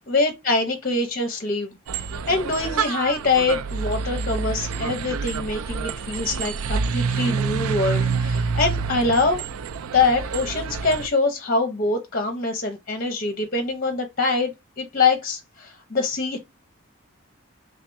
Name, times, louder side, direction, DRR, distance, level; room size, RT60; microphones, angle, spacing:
voice 1, 0.0-1.8 2.3-9.4 9.9-16.4, left 3 dB, 40° left, 0.7 m, -24 dB
sound 1, 1.9-11.1, right 5 dB, 85° right, 0.4 m, -27 dB
3.7 x 3.3 x 2.6 m
head